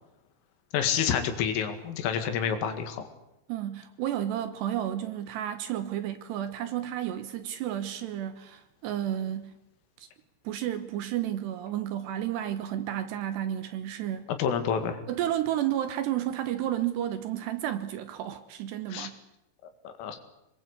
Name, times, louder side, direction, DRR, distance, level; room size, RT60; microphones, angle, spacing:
voice 1, 0.7-3.0 14.3-15.0 18.9-19.1 19.8-20.2, left 8 dB, 80° left, 4.7 m, -28 dB
voice 2, 3.5-9.5 10.4-14.3 15.1-19.2, right 11 dB, 70° right, 2.8 m, -32 dB
25.5 x 21.5 x 8.3 m
omnidirectional pair, 5.7 m